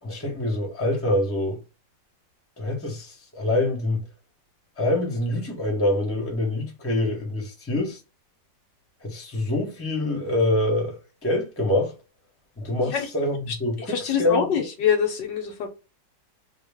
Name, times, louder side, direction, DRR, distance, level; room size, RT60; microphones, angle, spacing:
voice 1, 0.0-1.6 2.6-4.0 4.8-8.0 9.0-11.9 12.6-14.5, left 1 dB, 10° left, 0.8 m, -25 dB
voice 2, 13.9-15.7, left 7 dB, 75° left, 1.3 m, -24 dB
3.0 x 2.4 x 3.4 m
omnidirectional pair, 2.0 m